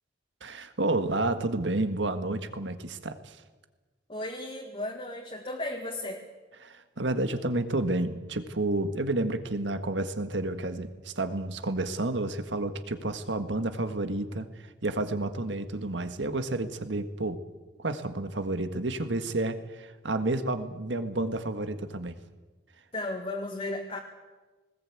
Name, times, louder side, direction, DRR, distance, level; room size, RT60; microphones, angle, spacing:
voice 1, 0.4-3.4 6.6-14.5 14.8-17.4 17.8-22.1, right 2 dB, 85° right, 9 dB, 1.7 m, -30 dB
voice 2, 4.1-6.2 22.9-24.0, left 2 dB, 30° left, 0 dB, 2.0 m, -35 dB
20.0 x 19.0 x 8.5 m, 1.2 s
head